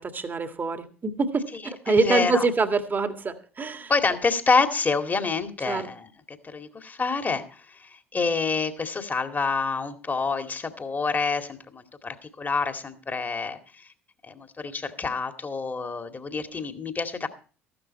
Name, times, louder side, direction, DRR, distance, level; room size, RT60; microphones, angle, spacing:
voice 1, 0.0-3.9 5.7-5.9, right 3 dB, 25° right, 8 dB, 1.9 m, -25 dB
voice 2, 1.9-2.5 3.9-13.9 14.2-17.3, left 4 dB, 25° left, 7 dB, 2.2 m, -27 dB
14.5 x 12.0 x 4.2 m, 0.38 s
figure-of-eight pair, 55°, 7 cm